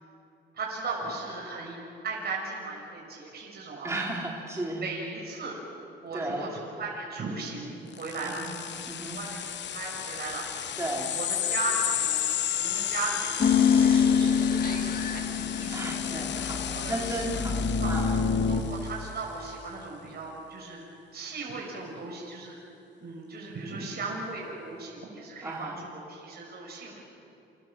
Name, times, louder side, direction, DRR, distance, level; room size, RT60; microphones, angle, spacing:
voice 1, 0.5-1.8 2.0-3.9 4.8-5.6 6.0-8.4 8.7-10.5 11.1-12.2 12.5-16.3 16.7-17.2 17.8-17.9 18.5-20.8 21.1-22.6 23.0-27.0, right 3 dB, 55° right, -2 dB, 6.8 m, -37 dB
voice 2, 3.8-4.8 6.1-6.5 8.2-8.6 8.9-9.2 10.8-11.2 15.7-18.2 25.4-25.8, right 1 dB, 15° right, -3 dB, 4.0 m, -34 dB
sound 1, 7.9-19.0, left 11 dB, 65° left, 0.9 m, -33 dB
sound 2, 13.4-18.6, left 6 dB, 45° left, 2.3 m, -25 dB
29.5 x 26.5 x 7.5 m, 2.8 s
cardioid pair, 90°, 20 cm